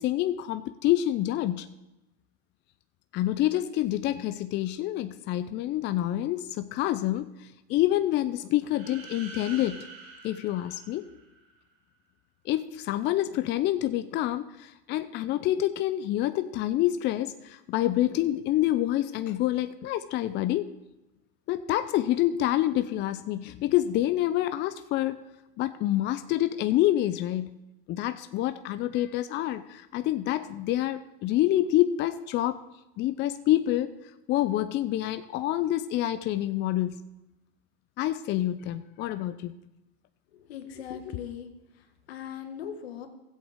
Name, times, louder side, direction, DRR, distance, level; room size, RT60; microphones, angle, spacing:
voice 1, 0.0-1.7 3.1-9.8 10.2-11.1 12.5-20.7 21.5-25.2 25.6-27.5 27.9-32.6 33.0-33.9 34.3-37.0 38.0-39.5, left 14 dB, 35° left, 11 dB, 0.5 m, -27 dB
sound 1, 8.6-11.6, right 4 dB, 85° right, 3.4 m, -46 dB
voice 2, 40.3-41.5 42.1-43.1, left 8 dB, 80° left, 7 dB, 1.6 m, -39 dB
16.0 x 8.0 x 3.7 m, 0.96 s
hypercardioid pair, 100°, 31 cm